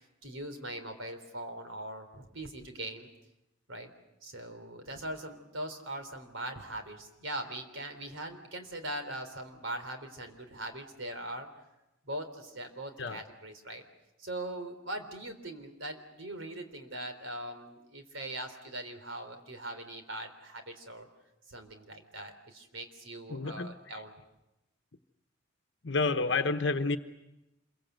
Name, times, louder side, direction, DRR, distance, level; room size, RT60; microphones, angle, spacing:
voice 1, 0.2-3.1 3.7-3.9 4.2-11.5 12.1-13.8 14.2-21.1 21.5-24.1, right 1 dB, 70° right, 7 dB, 3.7 m, -41 dB
voice 2, 23.3-23.7 25.8-27.0, left 3 dB, 60° left, 8 dB, 1.1 m, -29 dB
27.0 x 23.5 x 8.1 m, 0.93 s
head